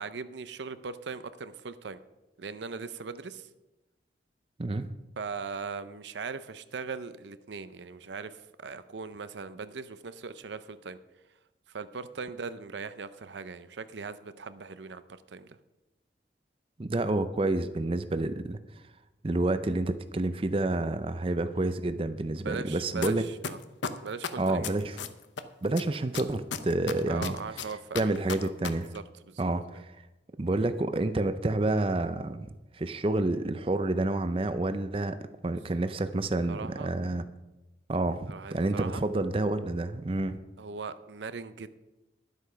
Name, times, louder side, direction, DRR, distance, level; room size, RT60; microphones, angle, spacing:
voice 1, 0.0-2.0 2.4-3.5 5.2-11.0 11.7-15.0 15.3-15.6 21.5-21.7 22.4-23.6 24.0-24.7 27.1-28.5 28.9-29.4 29.7-29.8 36.5-36.9 38.3-39.0 40.6-41.7, right 5 dB, 80° right, 13 dB, 0.6 m, -39 dB
voice 2, 4.6-4.9 16.8-18.6 19.2-23.2 24.4-25.0 25.6-27.3 27.9-28.9 29.4-29.9 30.4-32.5 32.7-35.2 35.4-37.2 37.9-40.4, right 2 dB, 30° right, 11 dB, 0.5 m, -29 dB
sound 1, 23.0-23.1 23.4-25.4 25.8-28.7 28.9-29.0, left 6 dB, 85° left, 0.7 m, -33 dB
11.5 x 8.1 x 5.6 m, 1.0 s
head